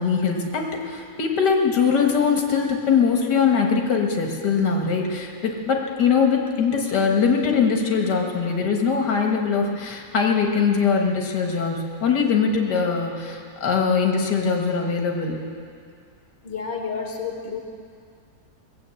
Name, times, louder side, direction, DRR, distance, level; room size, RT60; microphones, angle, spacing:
voice 1, 0.0-15.4, left 5 dB, 90° left, 2 dB, 2.1 m, -22 dB
voice 2, 16.4-17.6, left 5 dB, 40° left, 2 dB, 1.4 m, -30 dB
20.0 x 8.2 x 7.7 m, 2.4 s
omnidirectional pair, 1.8 m